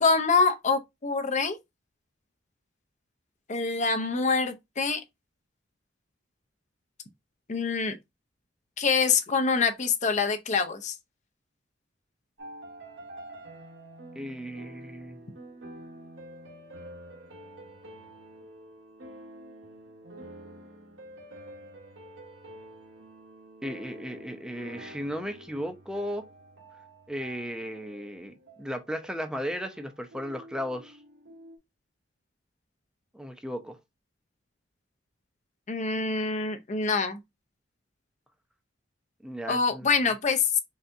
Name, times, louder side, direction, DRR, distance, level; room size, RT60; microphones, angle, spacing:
voice 1, 0.0-1.6 3.5-5.0 7.5-8.0 8.8-10.9 35.7-37.2 39.5-40.6, left 4 dB, 40° left, 0.7 m, -25 dB
sound 1, 12.4-31.6, right 1 dB, 70° right, 1.0 m, -48 dB
voice 2, 14.2-15.2 23.6-26.2 27.1-31.0 33.1-33.8 39.2-39.9, equal, 5° right, 0.6 m, -35 dB
4.0 x 3.4 x 2.6 m
head